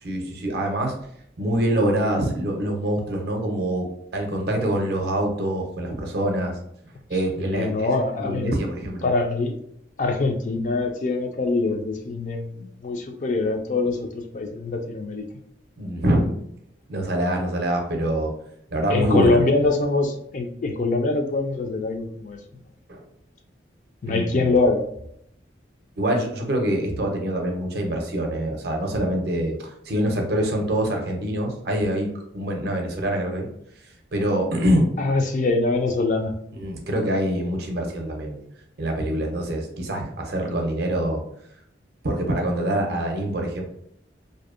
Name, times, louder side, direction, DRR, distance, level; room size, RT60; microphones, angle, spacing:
voice 1, 0.0-1.0 1.4-6.6 7.1-7.9 8.2-9.1 15.8-16.4 16.9-18.3 18.7-19.4 22.9-23.0 24.1-24.5 26.0-33.5 34.1-34.9 36.6-38.4 38.8-41.2 42.0-43.6, right 1 dB, 60° right, 2 dB, 0.5 m, -25 dB
voice 2, 7.4-8.5 9.0-9.6 10.0-15.2 18.9-22.4 24.0-24.8 35.0-36.3, left 3 dB, 40° left, 4 dB, 0.3 m, -24 dB
2.6 x 2.0 x 2.4 m, 0.72 s
head